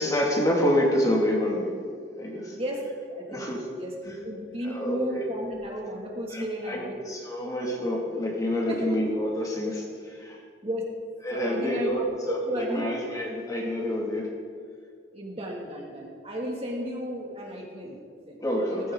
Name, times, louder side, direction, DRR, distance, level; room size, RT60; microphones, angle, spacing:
voice 1, 0.0-1.8 2.2-2.6 3.3-3.6 4.6-5.3 6.3-10.4 11.2-14.3 18.4-18.9, equal, 20° left, -2 dB, 2.6 m, -27 dB
voice 2, 2.5-7.1 8.7-9.0 10.6-10.9 11.3-12.9 15.1-18.4 18.7-18.9, equal, 35° right, -1 dB, 2.7 m, -34 dB
18.0 x 15.5 x 4.0 m, 2.1 s
head